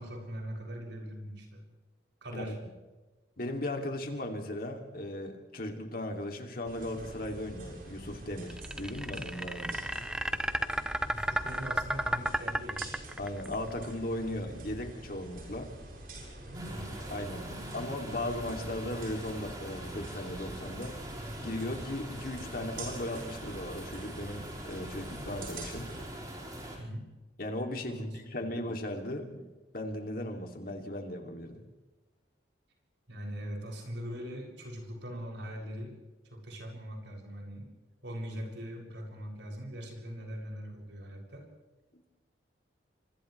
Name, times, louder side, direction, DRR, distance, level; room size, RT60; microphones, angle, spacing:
voice 1, 0.0-1.6 2.2-2.6 11.1-12.9 16.5-17.0 17.4-17.8 26.8-27.1 27.9-28.1 28.4-28.6 33.1-35.9 36.2-37.7 38.0-41.4, equal, 70° right, 0 dB, 7.4 m, -41 dB
voice 2, 3.4-9.8 13.2-15.7 17.1-17.5 17.7-20.9 21.4-25.9 27.4-29.5 29.7-31.6 41.9-42.1, left 1 dB, 50° left, 3 dB, 2.9 m, -37 dB
sound 1, 6.7-26.1, right 1 dB, 50° right, 7.0 m, -46 dB
sound 2, 8.5-13.5, right 1 dB, 5° right, 0.6 m, -32 dB
sound 3, 16.5-26.8, right 1 dB, 20° right, 5.2 m, -43 dB
30.0 x 26.0 x 3.4 m, 1.2 s
head